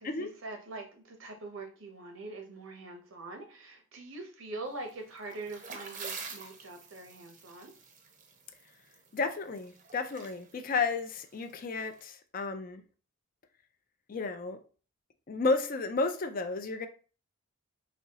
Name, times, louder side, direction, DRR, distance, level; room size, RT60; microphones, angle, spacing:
voice 1, 0.0-7.7, right 2 dB, 75° right, 0.9 m, -43 dB
sound 1, 4.9-12.0, right 5 dB, 40° right, 0.6 m, -47 dB
voice 2, 9.1-12.8 14.1-14.6 15.3-16.9, left 3 dB, 45° left, 0.4 m, -32 dB
4.2 x 2.7 x 2.8 m
head